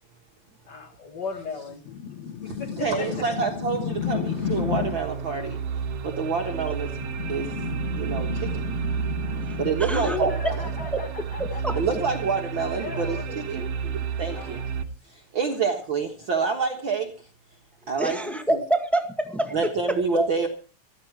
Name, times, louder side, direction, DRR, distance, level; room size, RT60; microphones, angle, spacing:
voice 1, 0.7-1.8 2.6-2.7 3.0-3.1 9.9-11.8 12.7-13.2 14.3-14.6, left 5 dB, 45° left, 5 dB, 1.6 m, -35 dB
sound 1, 1.9-5.1 6.9-9.7, left 8 dB, 65° left, 2.3 m, -32 dB
voice 2, 2.5-5.6 6.0-6.9 7.3-7.5 8.0-8.6 9.6-10.7 11.8-13.7 14.2-14.6 15.0-17.1 17.9-18.2 18.5-18.6 19.5-20.5, right 5 dB, 50° right, 2 dB, 1.9 m, -27 dB
sound 2, 3.5-14.8, right 6 dB, 70° right, 2.2 m, -31 dB
voice 3, 9.8-10.2 10.8-11.0 11.4-11.7 13.6-13.9 18.0-19.6 20.1-20.3, right 1 dB, ahead, 5 dB, 0.6 m, -27 dB
15.5 x 13.5 x 4.7 m, 0.38 s
omnidirectional pair, 3.4 m